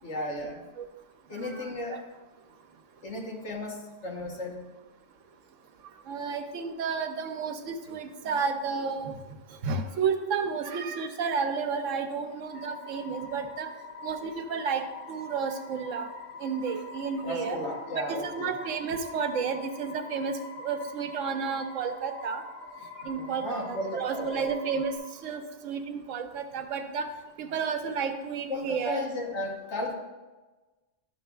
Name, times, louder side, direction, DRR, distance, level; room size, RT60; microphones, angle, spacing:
voice 1, 0.0-0.7 1.3-2.0 3.0-4.7 17.2-18.5 23.1-24.5 28.5-29.9, left 1 dB, 65° left, -1 dB, 1.4 m, -34 dB
voice 2, 1.4-2.0 6.1-9.2 9.6-13.7 14.0-16.1 16.4-17.6 17.9-20.4 20.6-22.4 23.0-25.0 25.2-27.1 27.4-29.0, right 5 dB, 85° right, 7 dB, 1.0 m, -31 dB
sound 1, 12.5-25.0, left 3 dB, 45° left, 1.8 m, -44 dB
11.0 x 6.5 x 2.3 m, 1.2 s
omnidirectional pair, 1.3 m